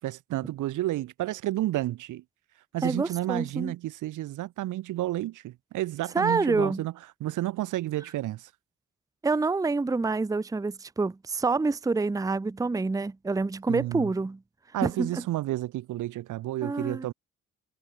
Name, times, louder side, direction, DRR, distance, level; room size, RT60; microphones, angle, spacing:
voice 1, 0.0-2.2 2.7-6.9 7.2-8.5 13.7-14.1 14.7-17.1, right 15 dB, 85° right, 2.1 m, -31 dB
voice 2, 2.8-3.7 6.1-6.8 9.2-14.4 14.8-15.1 16.6-17.1, right 3 dB, 10° right, 0.7 m, -27 dB
cardioid pair, 90°, 30 cm